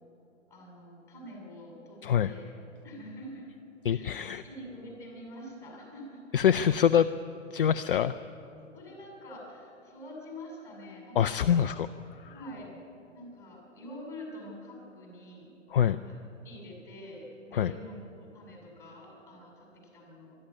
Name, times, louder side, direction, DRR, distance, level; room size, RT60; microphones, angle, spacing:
voice 1, 0.5-2.5 2.8-3.5 3.9-4.1 4.4-6.2 8.7-11.6 12.2-12.7 13.1-15.5 15.8-16.2 16.4-20.4, equal, 5° left, -2 dB, 6.5 m, -46 dB
voice 2, 3.8-4.4 6.3-7.1 7.5-8.1 11.2-11.9 12.2-12.3 15.7-16.0 17.5-17.7, left 9 dB, 45° left, 11 dB, 0.5 m, -24 dB
24.0 x 12.5 x 9.6 m, 2.8 s
figure-of-eight pair, 125°, 38 cm